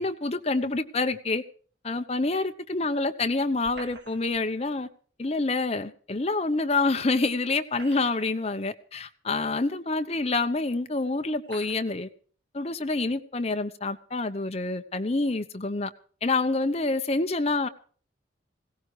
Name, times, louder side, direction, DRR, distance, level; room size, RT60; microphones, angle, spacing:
voice 1, 0.0-1.4 1.8-4.9 5.2-12.1 12.5-15.9 16.2-17.7, left 3 dB, 30° left, 0.8 m, -27 dB
sound 1, 3.6-4.5 6.2-6.3 7.5-8.4 9.3-9.4 10.4-10.5 11.4-11.9, right 3 dB, 60° right, 2.5 m, -47 dB
21.0 x 17.0 x 3.3 m
head